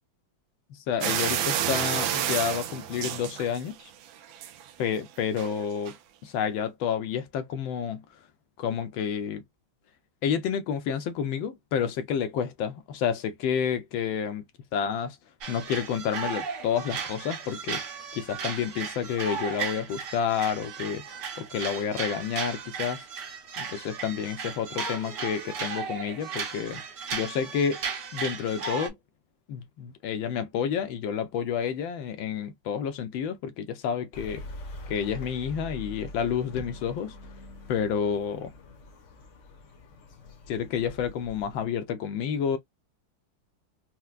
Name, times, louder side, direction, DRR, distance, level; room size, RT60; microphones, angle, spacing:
voice 1, 0.7-3.8 4.8-5.9 6.2-8.0 8.6-9.4 10.2-14.4 14.7-15.2 15.5-17.8 18.1-21.0 21.4-23.1 23.6-26.8 27.1-27.8 28.1-29.0 29.5-34.4 34.9-37.2 37.7-38.5 40.5-42.6, left 7 dB, 80° left, 1.4 m, -29 dB
sound 1, 1.0-3.9 4.2-4.7 5.4-5.5 5.9-6.0, right 10 dB, 80° right, 1.3 m, -29 dB
sound 2, 15.4-28.9, right 6 dB, 60° right, 1.6 m, -35 dB
sound 3, 34.1-41.6, left 2 dB, 55° left, 0.9 m, -44 dB
4.4 x 2.1 x 2.3 m
omnidirectional pair, 2.1 m